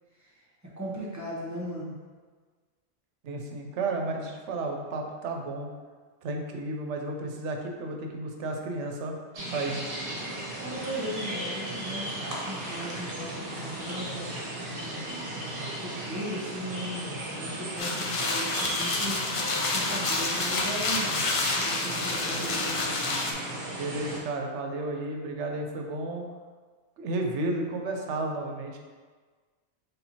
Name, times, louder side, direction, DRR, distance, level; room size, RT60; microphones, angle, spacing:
voice 1, 0.8-2.0 10.6-19.5 19.7-21.3 21.5-23.1, equal, 20° right, -5 dB, 0.7 m, -38 dB
voice 2, 3.2-5.7 6.2-9.1 9.5-9.8 23.8-26.3 27.0-28.8, right 2 dB, 85° right, 2 dB, 0.9 m, -32 dB
sound 1, 9.3-24.2, right 1 dB, 55° right, 0.9 m, -36 dB
sound 2, 17.8-23.3, left 3 dB, 60° left, 0.3 m, -29 dB
4.3 x 3.5 x 2.8 m, 1.5 s
omnidirectional pair, 1.2 m